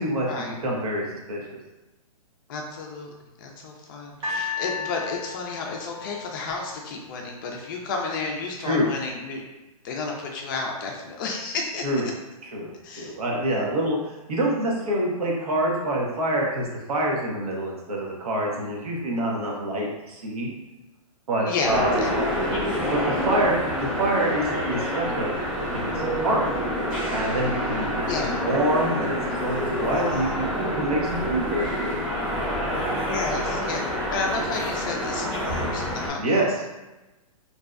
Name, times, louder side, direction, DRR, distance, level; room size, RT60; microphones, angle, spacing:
voice 1, 0.0-1.6 8.6-8.9 11.8-12.1 12.5-20.5 21.3-22.0 22.9-23.5 23.8-26.4 27.1-32.0 32.7-32.8 36.2-36.5, right 1 dB, 75° right, -2 dB, 0.8 m, -26 dB
voice 2, 2.5-3.1 3.4-9.4 9.8-12.1 12.8-13.2 13.5-13.7 21.4-22.1 22.4-22.8 28.1-28.4 29.8-30.3 33.0-33.8 34.1-36.6, left 4 dB, 35° left, 0 dB, 0.4 m, -32 dB
sound 1, 4.2-7.4 8.2-8.3, left 5 dB, 60° right, 1.0 m, -34 dB
sound 2, 21.6-36.1, equal, 5° right, 0.6 m, -27 dB
2.6 x 2.1 x 2.3 m, 1.1 s
hypercardioid pair, 145°, 19 cm